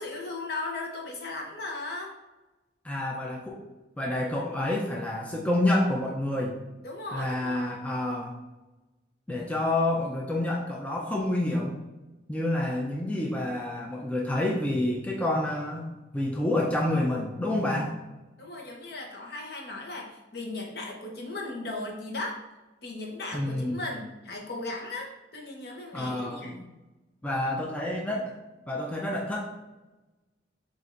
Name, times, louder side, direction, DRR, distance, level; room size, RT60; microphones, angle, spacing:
voice 1, 0.0-2.1 6.8-7.8 18.4-22.4 22.8-26.7, left 2 dB, 60° left, 0 dB, 0.8 m, -37 dB
voice 2, 2.8-3.7 4.0-6.6 7.1-8.3 9.3-11.8 12.3-17.9 23.3-23.8 25.9-26.5 27.2-28.3 28.7-29.4, left 1 dB, 10° left, -2 dB, 0.4 m, -28 dB
7.1 x 2.5 x 2.5 m, 1.1 s
head